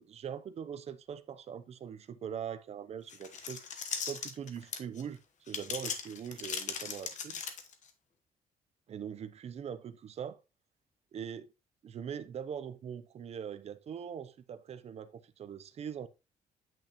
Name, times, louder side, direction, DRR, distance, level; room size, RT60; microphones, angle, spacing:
voice 1, 0.0-3.6 4.1-5.2 5.5-7.4 8.9-10.4 11.1-11.5 11.8-16.1, right 8 dB, 45° right, 0.6 m, -42 dB
sound 1, 3.1-5.0 5.5-7.9, left 6 dB, 55° left, 1.1 m, -38 dB
8.7 x 5.9 x 2.9 m
cardioid pair, 145°, 15 cm